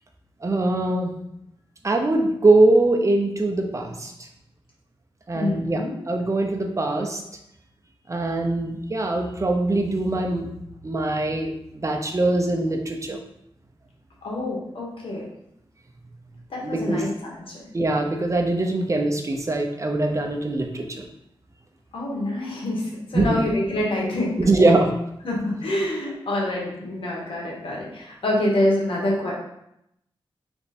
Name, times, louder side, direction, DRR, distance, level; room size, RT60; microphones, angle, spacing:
voice 1, 0.4-1.1 1.8-4.1 5.3-7.2 8.1-10.5 10.8-13.2 16.6-17.1 17.7-21.1 23.1-23.4 24.4-24.9, right 2 dB, 35° right, 2 dB, 0.7 m, -22 dB
voice 2, 5.3-5.9 14.2-15.3 16.5-17.1 21.9-24.4 25.2-29.3, left 1 dB, 70° left, -4 dB, 1.4 m, -26 dB
3.5 x 3.2 x 4.2 m, 0.80 s
cardioid pair, 65°, 9 cm